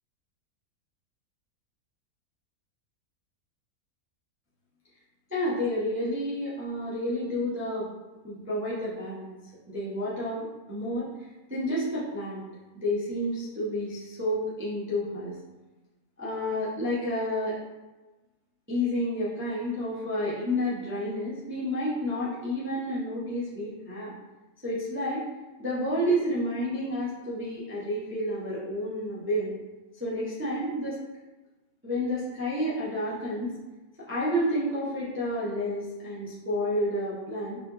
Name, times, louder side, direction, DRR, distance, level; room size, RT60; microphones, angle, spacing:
voice 1, 5.3-7.9 8.2-9.3 9.6-12.4 12.7-15.3 16.2-17.6 18.7-24.1 24.6-25.2 25.6-29.6 30.0-31.0 31.8-33.6 34.1-37.6, equal, 10° right, -9 dB, 0.6 m, -30 dB
3.8 x 3.3 x 2.9 m, 1.1 s
omnidirectional pair, 1.5 m